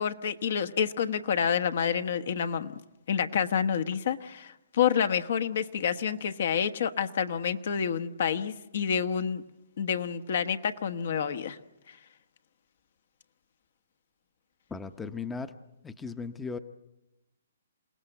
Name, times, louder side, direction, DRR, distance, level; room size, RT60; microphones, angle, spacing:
voice 1, 0.0-2.7 3.1-9.4 9.8-11.6, left 7 dB, 60° left, 10 dB, 1.2 m, -28 dB
voice 2, 14.7-15.5 15.8-16.6, left 5 dB, 10° left, 11 dB, 0.8 m, -37 dB
28.0 x 18.0 x 8.0 m, 0.92 s
hypercardioid pair, 145°, 0 cm